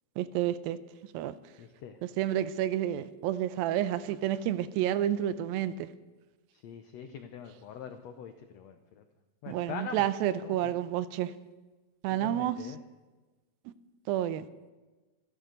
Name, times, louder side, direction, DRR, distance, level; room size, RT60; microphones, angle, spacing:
voice 1, 0.2-0.8 1.1-1.4 2.2-5.9 9.5-11.3 12.0-12.6 14.1-14.5, right 12 dB, 90° right, 2.4 m, -30 dB
voice 2, 1.6-2.0 6.5-9.0 9.4-10.1 10.4-10.7 12.1-12.8, left 7 dB, 85° left, 1.5 m, -43 dB
27.0 x 11.5 x 3.9 m
omnidirectional pair, 4.1 m